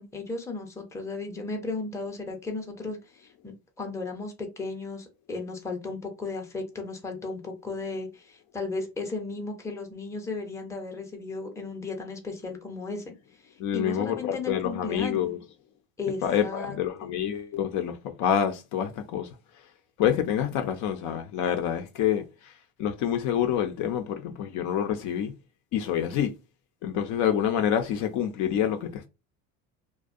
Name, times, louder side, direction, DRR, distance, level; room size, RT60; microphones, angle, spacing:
voice 1, 0.0-13.1 13.7-15.3 16.0-17.1, left 3 dB, 10° left, 0.6 m, -35 dB
voice 2, 13.6-15.4 16.2-19.3 20.0-22.2 22.8-25.3 25.7-26.3 26.8-29.1, left 9 dB, 55° left, 0.5 m, -27 dB
2.4 x 2.2 x 2.5 m
supercardioid pair, 110°, 35 cm